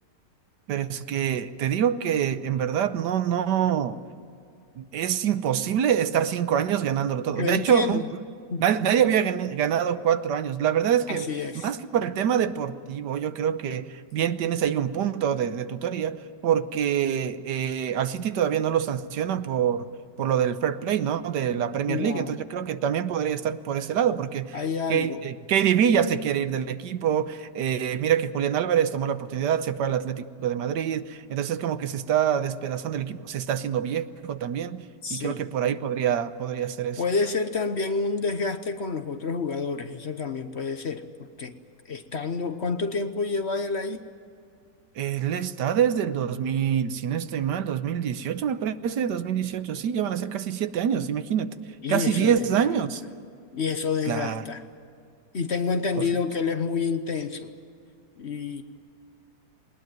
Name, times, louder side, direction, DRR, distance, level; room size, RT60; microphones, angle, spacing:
voice 1, 0.7-4.0 4.8-8.0 8.6-11.3 11.5-19.9 20.2-24.6 24.9-34.8 35.1-37.0 45.0-51.5 51.9-53.0 54.1-54.4 55.9-56.0, right 9 dB, 80° right, 12 dB, 1.5 m, -25 dB
voice 2, 7.3-8.0 8.5-8.6 11.1-11.7 21.9-22.3 24.5-25.2 35.0-35.4 37.0-41.6 41.9-44.0 51.8-52.5 53.5-54.6 55.3-57.5 58.2-58.6, left 4 dB, 45° left, 9 dB, 1.1 m, -28 dB
20.5 x 19.5 x 9.3 m, 2.4 s
omnidirectional pair, 1.8 m